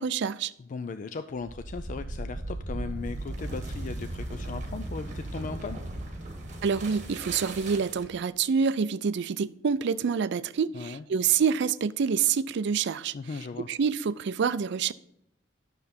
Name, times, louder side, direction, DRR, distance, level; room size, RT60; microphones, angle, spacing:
voice 1, 0.0-0.5 6.6-13.1 13.7-14.9, right 6 dB, 65° right, 0.4 m, -27 dB
voice 2, 0.6-5.8 10.7-11.0 13.1-13.7, left 4 dB, 40° left, 0.4 m, -37 dB
sound 1, 1.4-8.2, right 1 dB, 40° right, 1.5 m, -37 dB
9.5 x 6.7 x 4.3 m
head